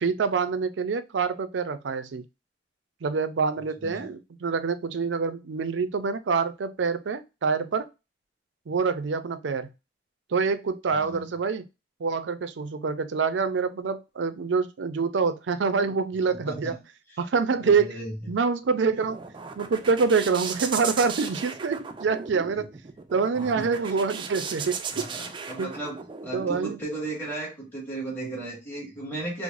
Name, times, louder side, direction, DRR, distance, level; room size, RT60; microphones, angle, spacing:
voice 1, 0.0-2.2 3.0-7.9 8.7-9.7 10.3-11.6 12.0-16.8 17.2-18.0 18.3-19.2 19.6-22.7 23.1-25.0 25.6-25.7 26.3-26.8, right 5 dB, 85° right, 0.5 m, -26 dB
voice 2, 10.9-11.2 16.3-16.8 17.1-17.2 17.6-18.1 23.4-23.7 24.9-29.4, right 2 dB, 10° left, 1.8 m, -35 dB
sound 1, 18.6-26.6, right 5 dB, 25° right, 0.3 m, -37 dB
4.7 x 2.0 x 2.5 m
head